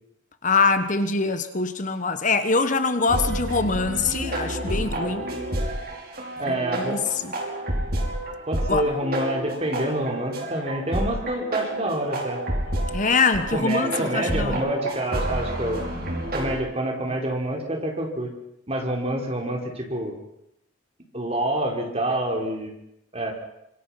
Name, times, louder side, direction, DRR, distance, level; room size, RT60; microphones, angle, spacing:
voice 1, 0.4-5.3 6.5-7.3 8.7-8.8 12.9-14.6 15.6-16.3, left 4 dB, 40° left, 9 dB, 1.3 m, -24 dB
sound 1, 3.1-16.6, right 1 dB, 50° right, 5.6 m, -30 dB
voice 2, 6.4-7.0 8.5-12.4 13.5-15.8 16.3-18.3 18.7-20.1 21.1-22.7 23.1-23.3, right 1 dB, 30° right, 1 dB, 4.6 m, -27 dB
26.0 x 24.5 x 5.9 m, 0.82 s
head